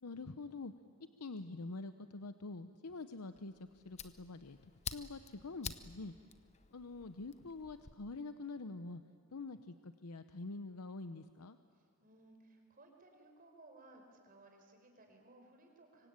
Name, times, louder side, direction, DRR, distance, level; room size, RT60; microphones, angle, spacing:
voice 1, 0.0-0.7 1.2-6.1 6.7-9.0 9.3-11.6, left 3 dB, 85° left, 10 dB, 0.8 m, -46 dB
Fire, 3.3-7.9, left 6 dB, 30° left, 0.9 m, -49 dB
voice 2, 11.7-16.1, right 2 dB, 40° right, 3 dB, 4.7 m, -61 dB
25.5 x 24.5 x 8.8 m, 2.2 s
head